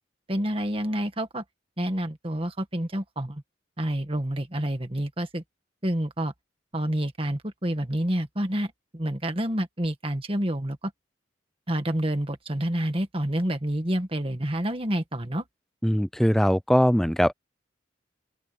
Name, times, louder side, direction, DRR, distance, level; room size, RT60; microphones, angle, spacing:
voice 1, 0.3-1.4 1.8-3.4 3.8-5.4 5.8-6.3 6.7-10.9 11.7-15.4, right 1 dB, 25° right, 1.8 m, -28 dB
voice 2, 15.8-17.3, equal, ahead, 0.4 m, -21 dB
open air
head